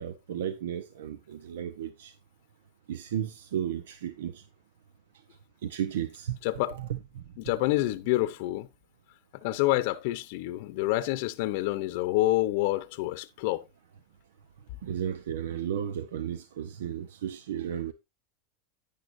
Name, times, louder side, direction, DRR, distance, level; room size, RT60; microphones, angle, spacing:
voice 1, 0.0-2.1 2.9-4.4 5.6-6.4 6.8-7.2 14.8-17.9, right 9 dB, 85° right, 0.8 m, -34 dB
voice 2, 6.4-6.8 7.4-8.7 9.4-13.6, left 17 dB, 65° left, 0.7 m, -27 dB
10.5 x 9.7 x 2.6 m
supercardioid pair, 120°, 0 cm